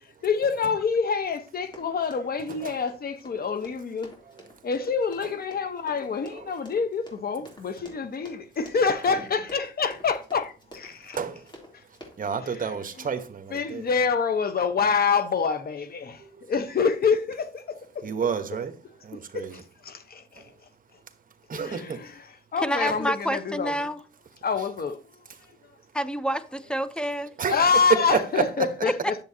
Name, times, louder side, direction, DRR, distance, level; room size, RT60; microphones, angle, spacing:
voice 1, 0.2-4.1 4.6-11.2 12.6-13.1 13.5-18.0 19.3-20.4 21.5-22.1 22.5-23.9 24.4-25.0 27.5-29.2, left 5 dB, 55° left, 1.1 m, -27 dB
Run, 1.6-12.4, equal, 25° left, 3.2 m, -48 dB
voice 2, 2.4-2.8 4.2-4.6 5.2-5.3 6.0-6.5 7.8-7.9 9.0-9.1 11.0-11.5 12.2-13.9 16.2-16.5 18.0-18.8 19.0-19.6 20.3-20.5 21.5-22.1 22.9-23.0 24.6-24.7 25.3-25.4 27.4-28.7, right 6 dB, 50° right, 1.1 m, -31 dB
voice 3, 22.6-24.0 25.9-27.3, equal, 5° left, 0.7 m, -28 dB
10.5 x 7.3 x 2.8 m
cardioid pair, 90°, 18 cm